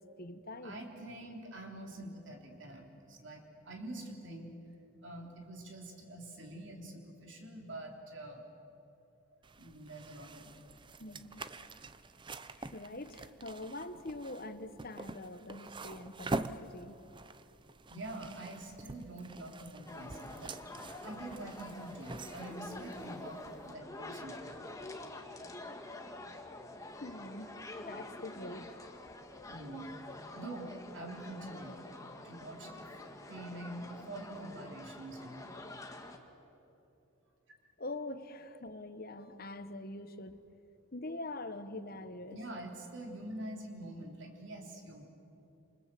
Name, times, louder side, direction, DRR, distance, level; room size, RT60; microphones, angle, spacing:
voice 1, 0.0-0.8 11.0-11.4 12.6-17.0 27.0-28.8 37.8-40.4 40.9-42.4, left 2 dB, 45° left, 11 dB, 1.2 m, -44 dB
voice 2, 0.6-4.5 5.0-8.4 9.6-10.5 17.9-20.6 21.0-24.5 29.5-29.9 30.4-31.8 32.2-32.9 33.3-35.5 42.3-45.1, right 1 dB, 55° right, 1 dB, 3.7 m, -46 dB
sound 1, 9.4-23.7, right 2 dB, 20° right, 0.6 m, -45 dB
sound 2, 19.9-36.2, left 2 dB, 15° left, 1.6 m, -47 dB
28.0 x 27.5 x 7.8 m, 3.0 s
head